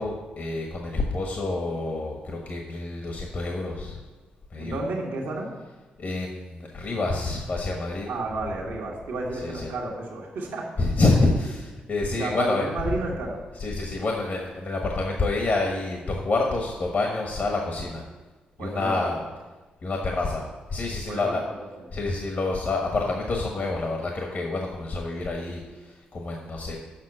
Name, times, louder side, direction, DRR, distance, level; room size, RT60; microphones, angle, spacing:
voice 1, 0.0-4.0 4.5-4.9 5.6-8.1 9.3-9.8 10.8-12.9 13.5-18.0 18.6-19.2 19.8-21.4 21.9-26.8, left 3 dB, 55° left, 1 dB, 1.3 m, -28 dB
voice 2, 4.6-5.5 8.0-10.7 12.2-13.4 18.6-19.1 21.1-21.4, right 2 dB, 80° right, -2 dB, 1.4 m, -31 dB
7.4 x 5.9 x 7.4 m, 1.3 s
supercardioid pair, 50°, 4 cm